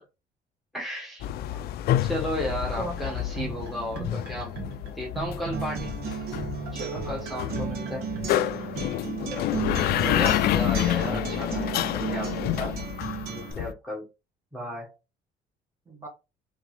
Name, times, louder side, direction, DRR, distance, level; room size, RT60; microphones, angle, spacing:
voice 1, 0.7-1.3 2.0-4.6 4.9-5.9 6.7-8.1 9.9-12.9 13.3-14.1 14.5-14.9, equal, ahead, 1.4 m, -34 dB
sound 1, 1.2-13.7, left 12 dB, 70° left, 0.4 m, -29 dB
sound 2, 2.8-8.9, right 2 dB, 85° right, 1.7 m, -38 dB
Acoustic guitar, 5.5-13.5, right 7 dB, 65° right, 1.2 m, -35 dB
voice 2, 9.2-10.4 15.8-16.1, right 1 dB, 15° right, 1.8 m, -40 dB
3.7 x 3.6 x 3.2 m
cardioid pair, 110°, 17 cm